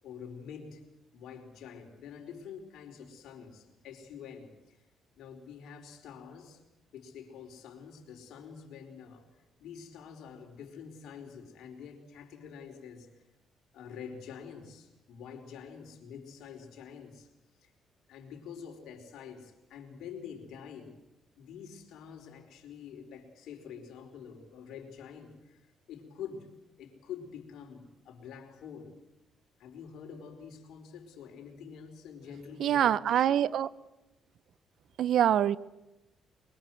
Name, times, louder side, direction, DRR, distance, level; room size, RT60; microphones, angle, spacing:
voice 1, 0.0-0.8 1.1-4.8 5.2-6.6 6.9-9.3 9.6-13.2 13.7-17.3 17.6-17.7 18.1-21.0 21.4-26.5 26.8-29.0 29.6-33.5, left 7 dB, 80° left, 3 dB, 4.5 m, -47 dB
voice 2, 32.6-33.7 35.0-35.6, right 10 dB, 70° right, 19 dB, 0.8 m, -25 dB
24.0 x 23.0 x 7.7 m, 0.96 s
cardioid pair, 90°, 0 cm